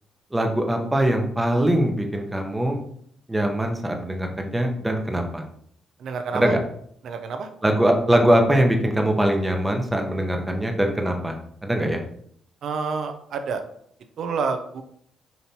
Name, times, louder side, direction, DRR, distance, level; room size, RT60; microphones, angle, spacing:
voice 1, 0.3-2.8 3.3-5.4 6.3-6.6 7.6-12.0, right 1 dB, 10° right, 3 dB, 0.8 m, -22 dB
voice 2, 6.0-6.5 7.0-7.5 12.6-13.6 14.2-14.8, right 5 dB, 65° right, 7 dB, 0.4 m, -28 dB
5.2 x 2.9 x 2.8 m, 0.65 s
cardioid pair, 90°, 0 cm